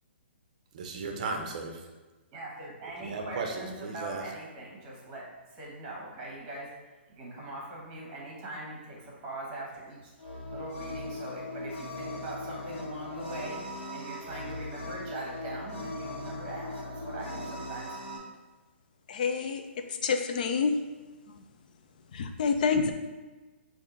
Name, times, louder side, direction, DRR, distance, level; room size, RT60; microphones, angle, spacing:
voice 1, 0.7-1.8 3.0-4.3, right 3 dB, 35° right, 3 dB, 0.6 m, -35 dB
voice 2, 2.3-18.0, right 1 dB, 20° right, -3 dB, 1.1 m, -42 dB
sound 1, 10.2-18.2, left 1 dB, 60° left, 1.4 m, -39 dB
voice 3, 19.1-19.6 19.9-20.8 21.3-21.4 22.1-22.9, left 5 dB, 40° left, 6 dB, 0.4 m, -28 dB
5.4 x 2.6 x 3.8 m, 1.2 s
hypercardioid pair, 170°, 7 cm